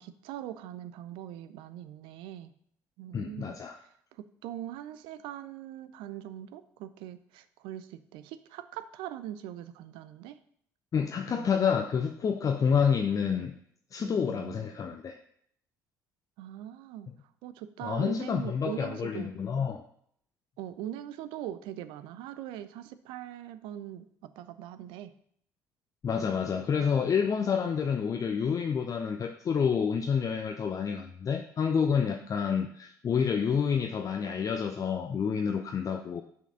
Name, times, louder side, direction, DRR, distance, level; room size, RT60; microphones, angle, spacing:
voice 1, 0.0-2.5 3.0-3.6 4.2-10.4 11.3-11.5 14.0-14.6 16.4-17.1 17.4-19.3 20.6-25.1 26.1-26.7, right 12 dB, 60° right, 12 dB, 0.5 m, -41 dB
voice 2, 3.1-3.8 10.9-13.5 13.9-15.2 17.8-19.8 26.0-36.2, left 6 dB, 35° left, 5 dB, 0.6 m, -28 dB
6.3 x 5.8 x 5.6 m, 0.66 s
figure-of-eight pair, 50°, 9 cm